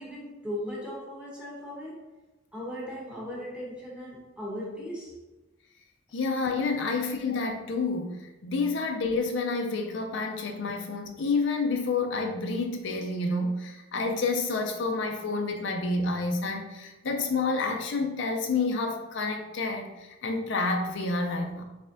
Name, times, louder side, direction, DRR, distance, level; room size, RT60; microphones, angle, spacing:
voice 1, 0.0-2.0 2.5-5.2, equal, 5° right, -5 dB, 1.1 m, -37 dB
voice 2, 6.1-21.6, left 3 dB, 65° left, 3 dB, 0.5 m, -29 dB
4.0 x 3.5 x 2.6 m, 1.1 s
head